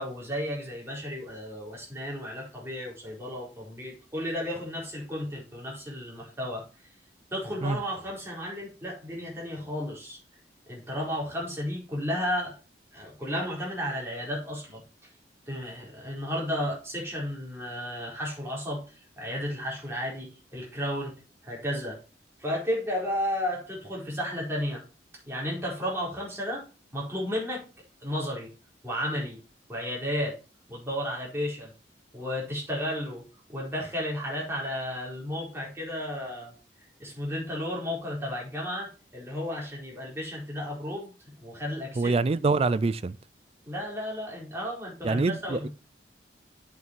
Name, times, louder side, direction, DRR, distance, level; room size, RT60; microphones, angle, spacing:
voice 1, 0.0-6.6 7.3-10.2 10.7-12.6 12.9-14.8 15.5-21.1 21.4-22.0 22.4-24.8 25.3-26.6 26.9-27.6 28.0-28.5 28.8-29.4 29.7-30.4 30.7-31.7 32.1-33.2 33.5-36.5 37.0-41.1 41.4-42.1 43.6-45.7, equal, 15° right, 4.3 m, -33 dB
voice 2, 42.0-43.2 45.0-45.7, right 3 dB, 35° right, 0.4 m, -25 dB
8.2 x 5.7 x 4.6 m
head